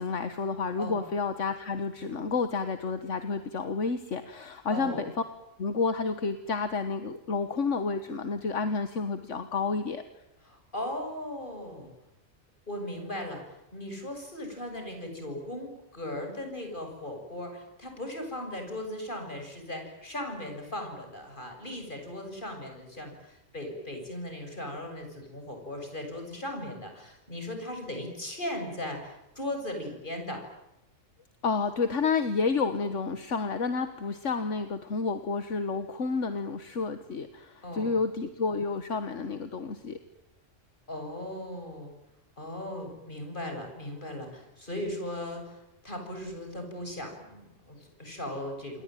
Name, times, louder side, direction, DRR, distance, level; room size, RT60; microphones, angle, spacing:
voice 1, 0.0-5.1 5.6-10.0 31.4-40.0, left 4 dB, 70° left, 9 dB, 1.8 m, -30 dB
voice 2, 4.7-5.0 10.4-11.9 12.7-30.4 37.6-38.0 40.9-41.9 42.4-48.8, left 1 dB, 40° left, 4 dB, 7.5 m, -38 dB
28.0 x 22.0 x 9.3 m, 0.90 s
omnidirectional pair, 1.3 m